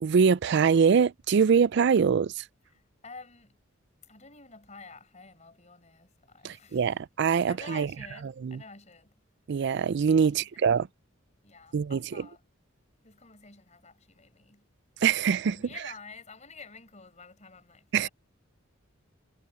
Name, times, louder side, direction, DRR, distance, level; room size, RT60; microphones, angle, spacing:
voice 1, 0.0-2.4 6.4-7.9 8.4-8.6 9.5-10.9 11.7-12.0 15.0-15.6 17.9-18.1, right 6 dB, 55° right, 0.4 m, -23 dB
voice 2, 2.7-3.6 4.1-7.0 7.5-9.2 10.2-10.9 11.4-12.4 13.0-14.7 15.5-18.1, left 4 dB, 35° left, 5.2 m, -49 dB
head